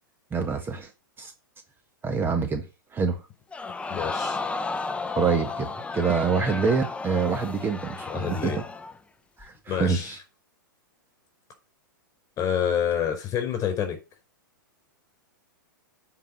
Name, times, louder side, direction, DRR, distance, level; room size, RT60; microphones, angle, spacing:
voice 1, 0.3-0.9 1.2-1.3 2.0-3.3 5.2-8.5 9.4-10.2, right 5 dB, 20° right, 1.4 m, -26 dB
Crowd, 3.5-9.0 9.4-9.5, left 3 dB, 10° left, 0.8 m, -33 dB
voice 2, 3.9-4.4 8.1-8.6 9.7-10.1 12.4-14.0, left 8 dB, 30° left, 4.9 m, -27 dB
9.3 x 5.0 x 7.7 m
hypercardioid pair, 110°, 11 cm